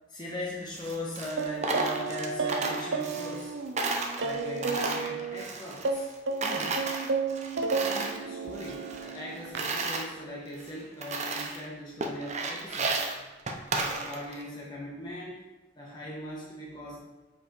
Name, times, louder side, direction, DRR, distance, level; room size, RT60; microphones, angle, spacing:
voice 1, 0.1-3.6 4.2-6.1 6.4-6.8 7.7-13.1 13.7-15.4 15.8-17.0, left 1 dB, 25° left, -5 dB, 1.2 m, -40 dB
Coin (dropping), 0.7-3.5 3.8-6.1 6.4-8.2 8.5-10.1 10.6-10.7 11.0-11.6 12.0-14.4, right 3 dB, 40° right, 0.8 m, -33 dB
sound 1, 1.4-5.4 5.8-9.8, right 4 dB, 80° right, 0.6 m, -32 dB
6.7 x 5.6 x 4.2 m, 1.1 s
head